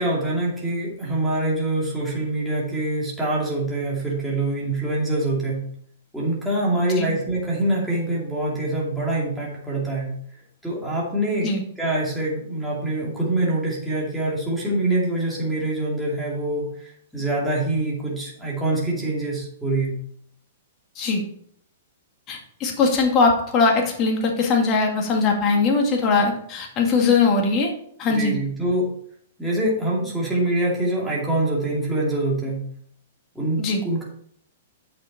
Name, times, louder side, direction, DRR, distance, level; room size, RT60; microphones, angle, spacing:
voice 1, 0.0-5.7 6.1-10.2 10.6-20.0 28.1-28.9 29.4-32.7 33.3-34.0, right 2 dB, ahead, -6 dB, 2.6 m, -25 dB
voice 2, 22.3-27.7 28.0-28.3 33.6-33.8, left 4 dB, 30° left, 0 dB, 2.1 m, -20 dB
8.1 x 6.4 x 4.3 m, 0.64 s
hypercardioid pair, 135°, 0 cm